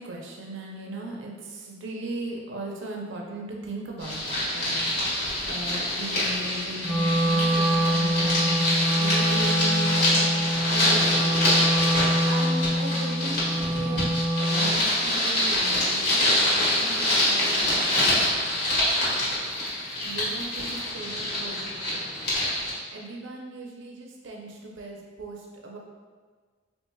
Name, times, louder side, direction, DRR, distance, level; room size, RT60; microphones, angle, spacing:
voice 1, 0.0-4.9 5.2-11.5 12.3-18.8 20.0-22.1 22.9-25.8, right 1 dB, 80° right, -1 dB, 0.6 m, -38 dB
sound 1, 4.0-22.7, left 1 dB, 55° left, 1.4 m, -25 dB
Wind instrument woodwind instrument, 6.8-14.8, equal, 15° left, 0.9 m, -25 dB
4.6 x 2.8 x 2.2 m, 1.5 s
head